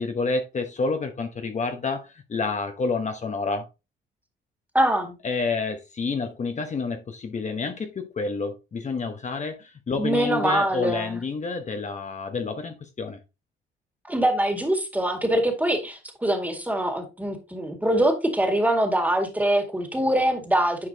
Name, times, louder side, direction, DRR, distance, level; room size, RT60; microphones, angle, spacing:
voice 1, 0.0-3.7 5.2-13.2, left 4 dB, 35° left, 1.0 m, -29 dB
voice 2, 4.7-5.1 10.0-11.2 14.1-20.9, right 1 dB, 10° right, 2.0 m, -23 dB
9.7 x 4.8 x 2.8 m
cardioid pair, 90°, 20 cm